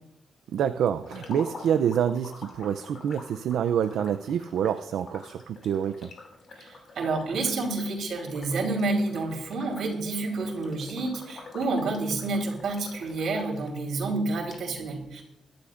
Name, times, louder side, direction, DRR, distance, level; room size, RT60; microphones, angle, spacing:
voice 1, 0.5-6.1, right 8 dB, 85° right, 10 dB, 0.4 m, -27 dB
sound 1, 1.0-13.8 14.2-14.3 14.5-14.6, left 3 dB, 45° left, 2.7 m, -47 dB
voice 2, 6.6-15.2, right 3 dB, 65° right, 1 dB, 3.5 m, -29 dB
21.5 x 12.0 x 2.5 m, 0.83 s
wide cardioid pair, 170°, 0 cm